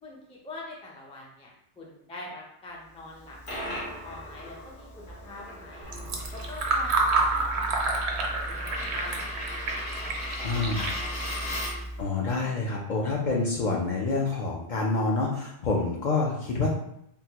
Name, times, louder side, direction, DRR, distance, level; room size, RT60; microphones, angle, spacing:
voice 1, 0.0-3.4 3.7-5.9 6.3-11.6, left 2 dB, 10° left, -3 dB, 0.3 m, -45 dB
Coin (dropping), 3.1-12.0, left 1 dB, 75° left, 1.3 m, -38 dB
Fill (with liquid), 5.8-12.0, right 3 dB, 75° right, 0.9 m, -29 dB
voice 2, 10.4-10.8 12.0-16.7, left 3 dB, 55° left, -2 dB, 0.5 m, -27 dB
3.7 x 2.1 x 2.8 m, 0.75 s
omnidirectional pair, 1.1 m